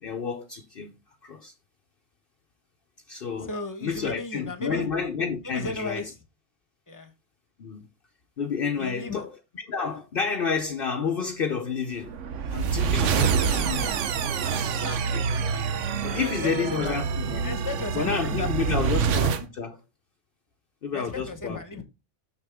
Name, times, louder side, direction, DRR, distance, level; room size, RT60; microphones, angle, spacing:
voice 1, 0.0-0.9 1.2-1.5 3.1-3.5 3.8-6.1 7.6-7.9 8.4-9.3 9.7-12.2 12.5-14.1 14.8-15.2 16.0-17.6 17.9-19.8 20.8-21.6, left 5 dB, 55° left, 0.9 m, -30 dB
voice 2, 3.4-4.9 5.4-6.2 6.9-7.1 8.8-9.2 14.8-15.0 16.1-17.0 17.4-18.9 20.9-21.8, left 3 dB, 15° left, 1.2 m, -35 dB
sound 1, 12.0-19.4, right 6 dB, 85° right, 1.1 m, -26 dB
6.8 x 6.7 x 3.5 m
omnidirectional pair, 1.2 m